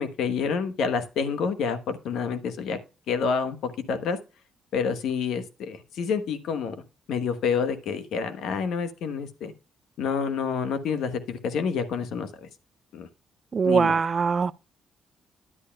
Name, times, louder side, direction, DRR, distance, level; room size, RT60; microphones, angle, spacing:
voice 1, 0.0-2.8 3.1-4.2 4.7-6.7 7.1-9.5 10.0-12.5 12.9-13.1 13.6-13.9, left 6 dB, 75° left, 1.1 m, -28 dB
voice 2, 13.5-14.5, right 5 dB, 45° right, 0.5 m, -22 dB
11.0 x 9.8 x 2.3 m
supercardioid pair, 55°, 0 cm